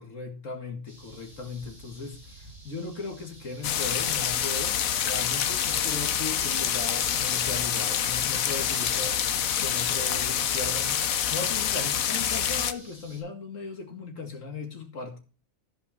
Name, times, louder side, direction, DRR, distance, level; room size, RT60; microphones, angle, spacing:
voice 1, 0.0-15.2, left 3 dB, 65° left, 2.4 m, -37 dB
sound 1, 0.9-13.2, right 1 dB, 65° right, 6.0 m, -51 dB
sound 2, 3.6-12.7, left 9 dB, 85° left, 1.3 m, -27 dB
14.0 x 5.4 x 4.3 m
omnidirectional pair, 1.4 m